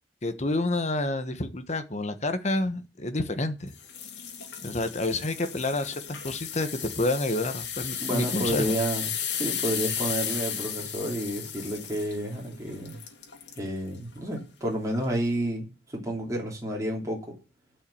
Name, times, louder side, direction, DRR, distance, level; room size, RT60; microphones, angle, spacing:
voice 1, 0.2-3.7 4.6-8.7, left 2 dB, 40° left, 1.2 m, -29 dB
sound 1, 3.8-13.7 14.2-14.4 14.9-15.0, left 8 dB, 90° left, 2.3 m, -35 dB
voice 2, 8.0-13.0 13.6-17.4, right 1 dB, 20° right, 3.3 m, -30 dB
10.0 x 5.7 x 8.5 m
head